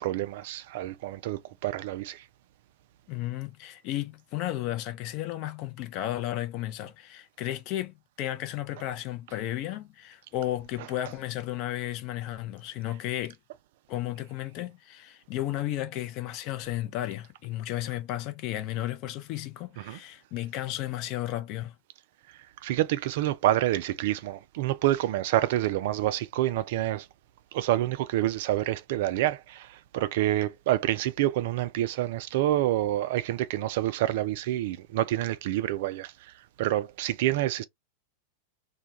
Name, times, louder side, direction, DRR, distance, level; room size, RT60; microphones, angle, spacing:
voice 1, 0.0-2.2 19.8-20.0 22.6-27.1 27.5-37.6, right 14 dB, 50° right, 0.3 m, -28 dB
voice 2, 3.1-13.4 13.9-21.7, left 14 dB, 40° left, 0.5 m, -33 dB
2.2 x 2.2 x 2.8 m
figure-of-eight pair, 90°, 0 cm